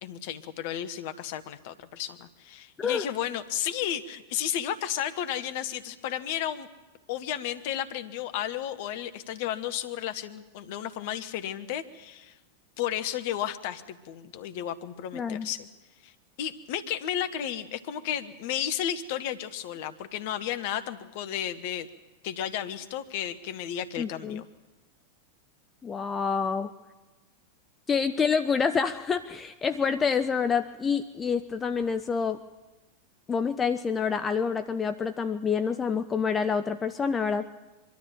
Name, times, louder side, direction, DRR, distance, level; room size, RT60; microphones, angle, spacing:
voice 1, 0.0-6.7 7.1-12.4 12.8-15.7 16.0-16.1 16.4-21.9 22.2-24.5, left 10 dB, 50° left, 11 dB, 1.2 m, -33 dB
voice 2, 15.1-15.5 24.0-24.4 25.8-26.7 27.9-32.4 33.3-37.5, left 6 dB, 20° left, 11 dB, 0.6 m, -27 dB
23.5 x 12.5 x 9.3 m, 1.2 s
figure-of-eight pair, 90°, 0 cm